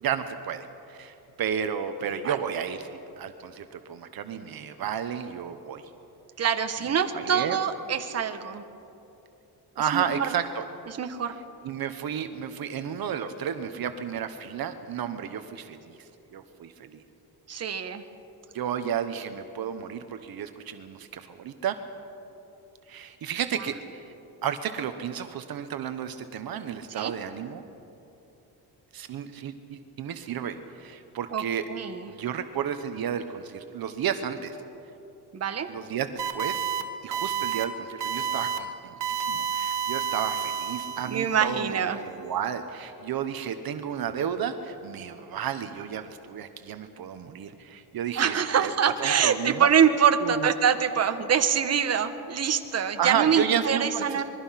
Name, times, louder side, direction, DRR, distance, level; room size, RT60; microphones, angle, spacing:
voice 1, 0.0-5.8 7.1-7.6 9.8-10.6 11.6-16.0 16.3-17.0 18.5-21.7 22.9-24.1 24.4-27.6 28.9-31.6 32.2-34.6 35.7-36.7 37.0-49.7 50.2-50.5 53.0-54.2, right 8 dB, 60° right, 8 dB, 1.2 m, -32 dB
voice 2, 6.4-8.6 9.8-10.3 10.9-11.4 17.5-18.0 26.9-27.1 31.3-31.4 31.7-32.1 35.3-35.7 41.0-42.0 48.2-54.2, right 7 dB, 40° right, 7 dB, 1.3 m, -25 dB
sound 1, 36.2-36.8 37.1-37.6 38.0-38.6 39.0-41.3, right 8 dB, 85° right, 1.9 m, -30 dB
26.0 x 22.0 x 5.9 m, 2.9 s
cardioid pair, 145°, 40 cm